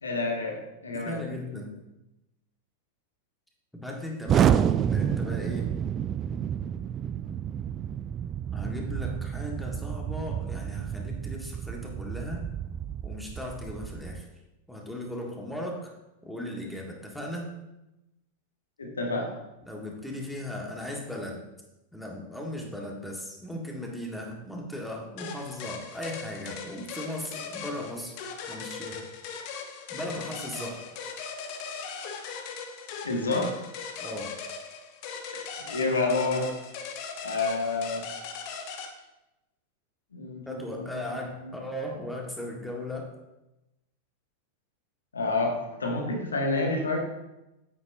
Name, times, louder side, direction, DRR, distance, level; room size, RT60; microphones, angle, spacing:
voice 1, 0.0-0.6 0.8-1.2 18.8-19.3 33.0-33.5 35.6-36.5 37.2-38.0 40.1-40.9 41.4-41.6 45.1-47.0, left 3 dB, 75° left, 1 dB, 1.7 m, -28 dB
voice 2, 0.9-1.7 3.7-5.7 8.5-12.4 13.0-14.3 14.7-15.9 16.2-17.5 19.7-21.4 21.9-28.1 28.4-29.0 29.9-30.8 34.0-34.3 40.4-43.1, left 1 dB, ahead, -1 dB, 1.7 m, -37 dB
Explosion, 4.3-14.2, right 9 dB, 30° right, 0.4 m, -29 dB
sound 1, 25.2-38.9, left 5 dB, 45° left, 1.1 m, -39 dB
9.4 x 8.7 x 2.7 m, 0.96 s
figure-of-eight pair, 90°, 0 cm